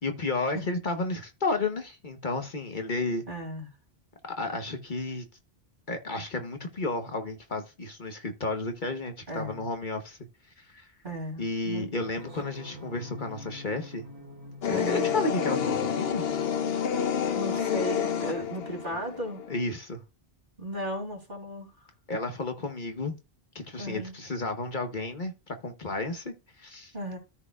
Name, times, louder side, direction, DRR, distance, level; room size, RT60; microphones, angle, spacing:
voice 1, 0.0-3.2 4.4-5.3 5.9-10.2 10.6-10.9 11.4-14.1 14.7-16.2 19.5-20.0 22.1-23.1 23.5-26.9, left 3 dB, 50° left, 1.2 m, -32 dB
voice 2, 3.3-3.7 9.3-9.6 11.0-11.9 14.7-15.1 17.3-19.4 20.6-21.7 23.8-24.1 26.9-27.2, right 1 dB, 50° right, 3.1 m, -35 dB
sound 1, 12.2-17.2, left 1 dB, 25° right, 3.1 m, -46 dB
sound 2, 14.6-19.6, left 8 dB, 65° left, 1.0 m, -29 dB
14.0 x 4.7 x 2.4 m
omnidirectional pair, 1.1 m